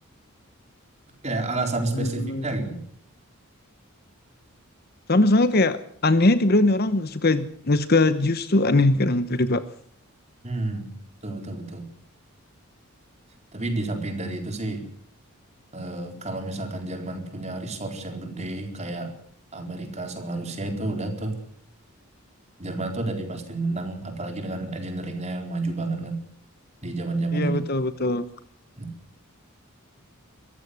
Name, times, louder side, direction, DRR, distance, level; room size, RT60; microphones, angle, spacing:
voice 1, 1.2-2.8 10.4-10.9 11.2-11.9 13.5-14.8 15.7-19.1 19.5-21.4 22.6-26.2 26.8-27.6 28.8-28.9, right 2 dB, 30° right, 5 dB, 4.0 m, -30 dB
voice 2, 1.9-2.4 5.1-9.6 27.3-28.2, left 2 dB, 45° left, 13 dB, 0.9 m, -21 dB
23.0 x 15.0 x 8.2 m, 0.63 s
head